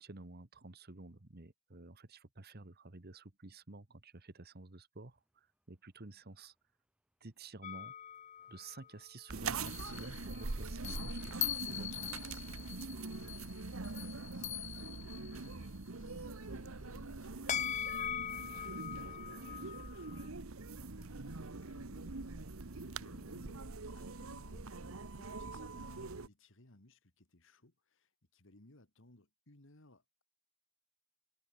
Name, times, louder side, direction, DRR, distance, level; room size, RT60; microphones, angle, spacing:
voice 1, 0.0-6.5 7.2-7.9 8.5-11.4 11.7-12.5, right 2 dB, 50° right, 1.5 m, -51 dB
sound 1, 5.1-13.2, right 1 dB, 5° right, 5.2 m, -73 dB
sound 2, 7.6-8.9 9.7-15.5 17.5-20.3, left 10 dB, 35° left, 0.4 m, -42 dB
sound 3, 9.3-26.3, right 3 dB, 75° right, 1.3 m, -43 dB
voice 2, 13.8-22.1 22.7-30.2, left 1 dB, 65° left, 2.8 m, -63 dB
head